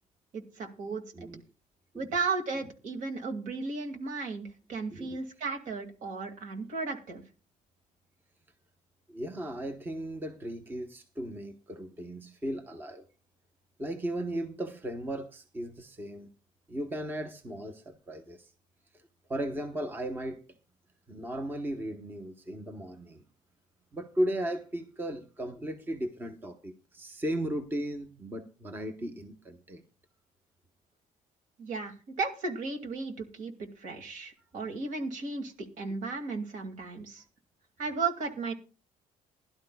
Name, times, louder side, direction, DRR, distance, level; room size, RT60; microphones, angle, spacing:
voice 1, 0.3-1.0 1.9-7.2 31.6-37.2 37.8-38.5, right 4 dB, 65° right, 2.3 m, -35 dB
voice 2, 9.1-13.1 13.8-16.3 16.7-18.5 18.9-20.4 21.1-23.2 23.9-29.8, right 1 dB, 15° right, 1.0 m, -36 dB
21.0 x 12.0 x 2.3 m
cardioid pair, 165°, 14 cm